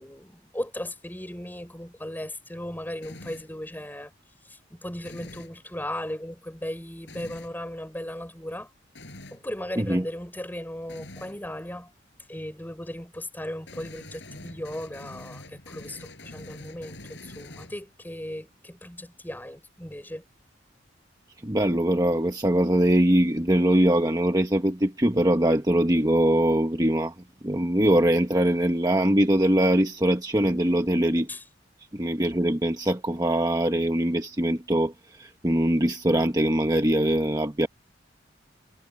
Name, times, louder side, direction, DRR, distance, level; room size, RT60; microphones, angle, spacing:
voice 1, 0.0-4.1 4.5-8.7 9.3-11.9 12.3-20.2 31.3-31.4, left 1 dB, 10° left, 4.5 m, -37 dB
sound 1, 3.0-3.6 5.0-5.6 7.1-7.5 9.0-9.5 10.9-11.4 13.7-18.0, left 2 dB, 65° left, 7.6 m, -45 dB
voice 2, 21.4-27.1 27.4-31.3 31.9-37.7, right 1 dB, 20° right, 1.2 m, -22 dB
head